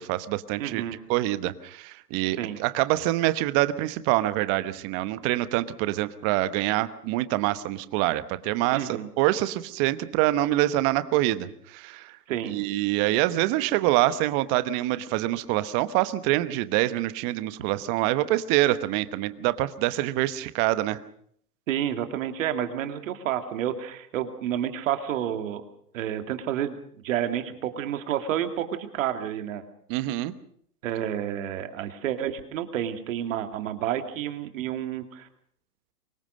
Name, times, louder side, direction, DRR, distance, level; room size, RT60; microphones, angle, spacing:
voice 1, 0.0-0.8 1.1-12.2 12.5-21.0 29.9-30.3, right 16 dB, 30° right, 13 dB, 1.1 m, -25 dB
voice 2, 0.6-0.9 2.4-2.6 8.7-9.1 12.3-12.6 21.7-25.6 25.9-26.8 27.0-29.6 30.8-35.3, right 10 dB, 55° right, 7 dB, 2.9 m, -30 dB
24.5 x 20.5 x 6.5 m, 0.65 s
hypercardioid pair, 135°, 47 cm